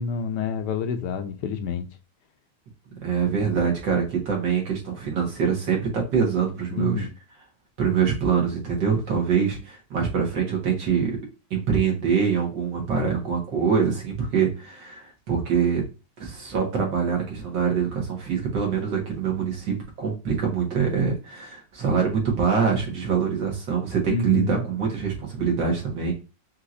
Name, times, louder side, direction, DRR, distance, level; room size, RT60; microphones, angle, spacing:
voice 1, 0.0-1.9 6.7-7.1 24.1-24.6, left 6 dB, 75° left, 1.2 m, -28 dB
voice 2, 3.0-7.1 7.8-11.2 11.5-15.8 16.2-26.1, right 6 dB, 85° right, 2.3 m, -24 dB
5.8 x 3.0 x 2.5 m
omnidirectional pair, 1.9 m